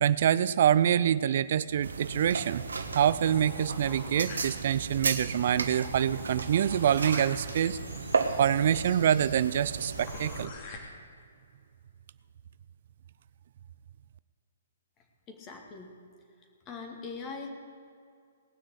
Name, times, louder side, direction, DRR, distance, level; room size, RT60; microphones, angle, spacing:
voice 1, 0.0-2.6 2.9-7.8 8.4-10.5, right 9 dB, 55° right, 17 dB, 0.4 m, -25 dB
sound 1, 1.8-10.4, right 4 dB, 85° right, 1.3 m, -35 dB
sound 2, 3.2-4.9 5.3-5.4 5.6-10.8, left 3 dB, 40° left, 2.6 m, -47 dB
voice 2, 15.0-15.9 16.4-17.5, left 4 dB, 25° left, 2 dB, 2.4 m, -42 dB
18.5 x 6.3 x 8.1 m, 2.3 s
hypercardioid pair, 135°, 0 cm